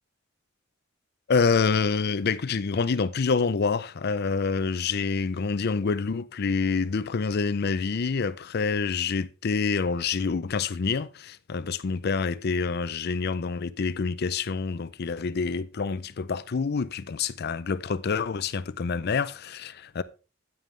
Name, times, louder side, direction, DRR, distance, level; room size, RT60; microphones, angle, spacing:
voice 1, 1.3-20.0, left 5 dB, 55° left, 0.5 m, -27 dB
9.2 x 9.2 x 3.3 m
head